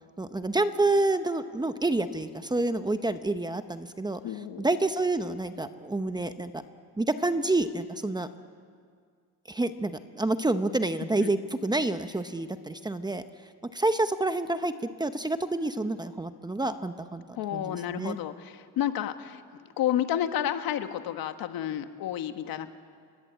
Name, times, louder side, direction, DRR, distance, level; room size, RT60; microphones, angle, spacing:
voice 1, 0.2-4.2 4.6-6.6 7.0-8.3 9.5-13.2 13.7-14.7 15.0-17.2 17.5-18.2, right 2 dB, 10° right, 9 dB, 0.9 m, -28 dB
voice 2, 4.2-4.6 11.2-11.4 17.3-19.4 19.8-22.7, left 11 dB, 70° left, 8 dB, 1.6 m, -31 dB
28.5 x 22.5 x 8.3 m, 2.1 s
cardioid pair, 135°, 36 cm